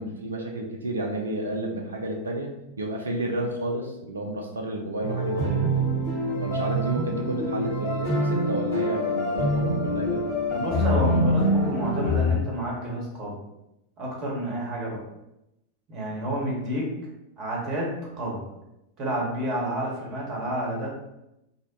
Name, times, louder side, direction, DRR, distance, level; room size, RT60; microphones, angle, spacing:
voice 1, 0.0-2.5 2.8-5.9 6.4-10.3, right 1 dB, 70° right, 2 dB, 0.4 m, -31 dB
sound 1, 5.0-12.4, equal, 45° left, 0.8 m, -25 dB
voice 2, 10.5-13.4 14.0-15.0 15.9-16.9 17.4-18.4 19.0-20.9, equal, 35° right, -2 dB, 0.8 m, -30 dB
2.7 x 2.0 x 2.7 m, 0.87 s
figure-of-eight pair, 90°, 0 cm